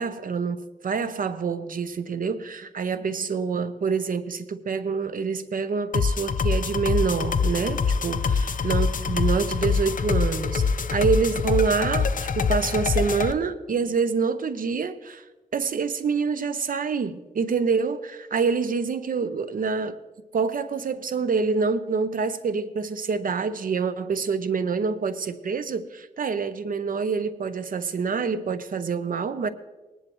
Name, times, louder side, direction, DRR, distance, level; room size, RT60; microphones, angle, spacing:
voice 1, 0.0-10.6 10.9-15.2 15.5-20.0 20.3-29.5, right 5 dB, 70° right, 0.7 m, -26 dB
sound 1, 5.9-13.3, left 5 dB, 65° left, 0.6 m, -24 dB
19.5 x 11.0 x 3.1 m
wide cardioid pair, 90°, 15 cm